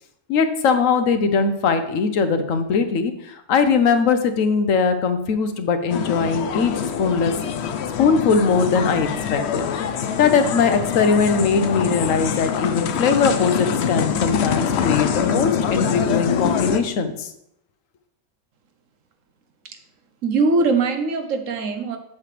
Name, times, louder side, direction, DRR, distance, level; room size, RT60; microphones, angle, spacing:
voice 1, 0.3-6.7 7.0-7.3 8.0-9.7 10.2-17.3, left 5 dB, 90° left, 9 dB, 1.2 m, -20 dB
sound 1, 5.9-16.8, left 7 dB, 65° left, 0.8 m, -24 dB
voice 2, 20.2-22.0, right 3 dB, 80° right, 7 dB, 1.3 m, -21 dB
7.7 x 7.5 x 3.3 m, 0.76 s
omnidirectional pair, 1.3 m